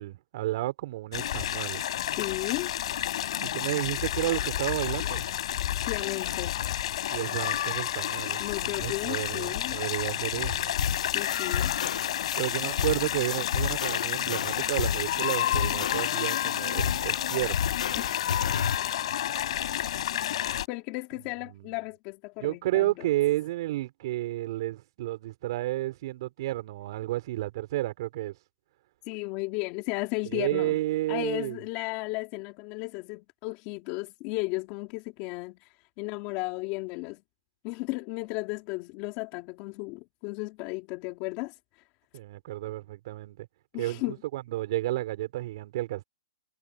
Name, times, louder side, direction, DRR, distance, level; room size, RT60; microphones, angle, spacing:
voice 1, 0.0-1.8 3.4-5.3 7.1-10.7 12.3-17.8 21.4-21.7 22.4-28.3 30.3-31.6 42.1-43.5 43.8-46.0, right 16 dB, 40° right, 5.0 m, -31 dB
sound 1, 1.1-20.7, left 12 dB, 50° left, 5.6 m, -30 dB
voice 2, 2.2-2.7 5.9-6.6 8.4-9.8 11.1-11.7 18.0-18.3 20.7-23.1 29.1-30.8 31.1-37.2 37.6-41.6 43.7-44.1, left 24 dB, 25° left, 3.3 m, -34 dB
sound 2, 10.8-18.8, left 7 dB, 70° left, 1.3 m, -32 dB
hypercardioid pair, 165°, 4 cm